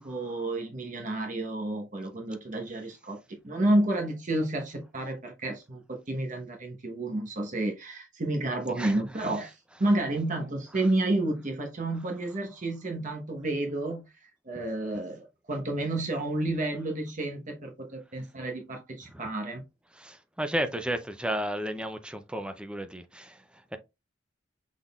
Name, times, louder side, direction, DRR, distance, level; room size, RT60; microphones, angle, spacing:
voice 1, 0.0-14.1 14.4-19.6, right 1 dB, 40° right, 1.0 m, -30 dB
voice 2, 19.9-23.8, right 1 dB, 5° right, 0.5 m, -33 dB
6.0 x 3.7 x 2.3 m
head